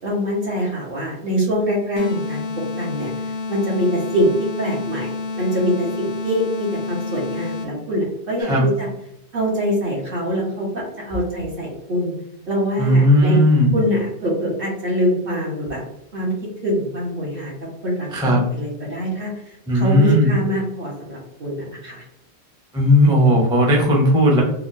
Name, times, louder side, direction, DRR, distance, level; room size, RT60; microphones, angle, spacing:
voice 1, 0.0-2.4 2.8-3.1 3.5-4.3 4.6-8.5 8.8-8.9 9.3-12.1 12.5-13.4 13.7-15.8 16.1-16.3 16.6-17.5 17.8-22.0, equal, 60° right, -4 dB, 0.9 m, -24 dB
sound 1, 2.0-7.9, left 3 dB, 85° left, 0.9 m, -29 dB
voice 2, 12.8-13.7 18.1-18.4 19.7-20.3 22.7-24.4, equal, 5° right, -2 dB, 0.3 m, -15 dB
3.5 x 2.1 x 2.5 m, 0.80 s
omnidirectional pair, 1.1 m